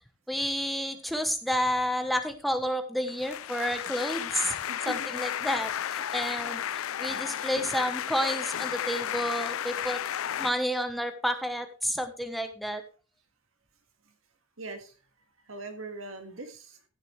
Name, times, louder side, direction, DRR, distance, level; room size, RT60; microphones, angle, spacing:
voice 1, 0.3-4.6 4.9-10.0 10.4-12.8, equal, ahead, 7 dB, 1.2 m, -30 dB
sound 1, 3.1-10.5, left 10 dB, 85° left, 0.4 m, -33 dB
voice 2, 4.7-5.1 14.6-15.0 15.5-16.8, right 2 dB, 80° right, 7 dB, 1.9 m, -41 dB
15.0 x 8.1 x 3.3 m, 0.33 s
head